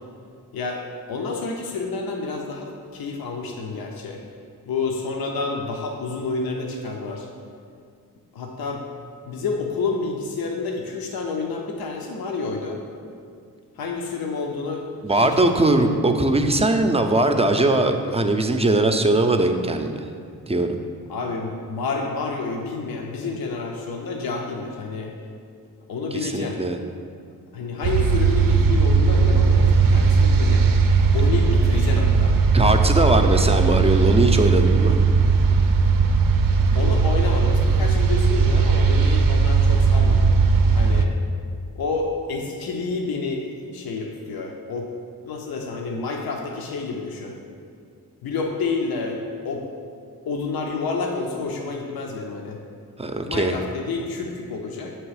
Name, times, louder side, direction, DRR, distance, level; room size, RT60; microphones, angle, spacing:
voice 1, 0.5-0.8 1.1-4.2 4.6-7.3 8.3-8.8 9.3-12.8 13.8-16.0 21.1-25.1 25.9-26.6 27.5-30.7 31.1-32.4 36.7-40.3 40.7-41.1 41.8-44.9 45.2-47.4 48.2-49.7 50.2-52.6 53.3-54.9, left 4 dB, 75° left, 1 dB, 0.6 m, -29 dB
voice 2, 15.0-19.9 20.5-20.7 26.1-26.8 32.5-35.0 53.0-53.5, right 2 dB, 15° right, 5 dB, 0.5 m, -20 dB
sound 1, 27.8-41.1, right 4 dB, 65° right, 0.5 m, -18 dB
7.1 x 3.0 x 4.8 m, 2.2 s
cardioid pair, 45°, 36 cm